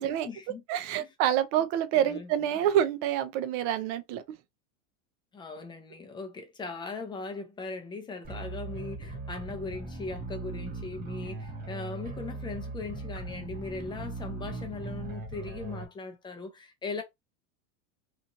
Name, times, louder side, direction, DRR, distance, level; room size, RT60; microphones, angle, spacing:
voice 1, 0.0-0.6 1.0-1.1 2.0-2.3 5.3-17.0, left 3 dB, 10° left, 0.5 m, -39 dB
voice 2, 0.7-4.2, right 10 dB, 50° right, 0.5 m, -27 dB
sound 1, 8.2-15.9, right 3 dB, 20° right, 0.8 m, -39 dB
3.0 x 2.5 x 2.5 m
supercardioid pair, 130°, 41 cm